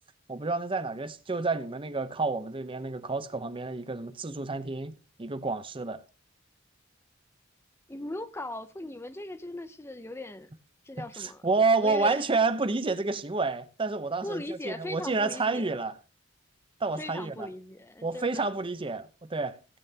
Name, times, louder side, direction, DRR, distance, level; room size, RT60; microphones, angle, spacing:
voice 1, 0.3-4.9 5.2-6.0 11.2-15.9 16.8-17.5 18.0-19.6, right 3 dB, 25° right, 0.7 m, -29 dB
voice 2, 7.9-10.5 10.8-11.4 11.8-12.2 14.2-15.8 17.0-18.5, left 1 dB, 15° left, 0.6 m, -39 dB
16.5 x 8.8 x 2.8 m
head